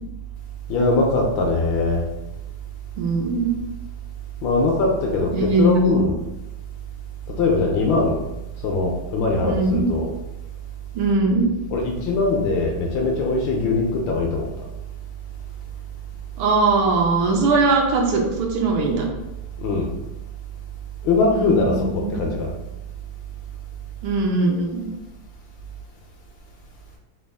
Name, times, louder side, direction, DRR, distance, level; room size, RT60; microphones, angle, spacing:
voice 1, 0.7-2.0 4.4-6.2 7.4-8.2 8.6-10.1 11.7-14.5 19.6-19.9 21.0-22.5, left 3 dB, 75° left, 1 dB, 1.2 m, -21 dB
voice 2, 3.0-3.5 5.3-6.0 9.4-9.8 10.9-11.5 16.4-19.1 21.3-22.2 24.0-24.9, right 3 dB, 75° right, 1 dB, 1.4 m, -20 dB
4.1 x 2.3 x 3.4 m, 0.94 s
omnidirectional pair, 2.4 m